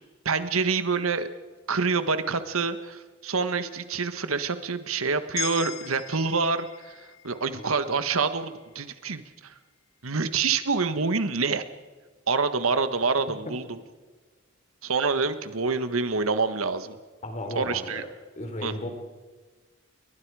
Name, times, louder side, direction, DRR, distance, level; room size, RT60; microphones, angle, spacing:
voice 1, 0.2-1.3 1.7-9.5 10.0-11.6 12.3-13.8 14.8-17.0 17.5-18.0 18.6-18.7, right 4 dB, 85° right, 10 dB, 1.4 m, -27 dB
sound 1, 5.4-9.6, left 11 dB, 90° left, 1.8 m, -40 dB
voice 2, 17.2-18.0 18.4-18.9, left 1 dB, 35° left, 5 dB, 4.1 m, -34 dB
30.0 x 22.5 x 4.9 m, 1.4 s
head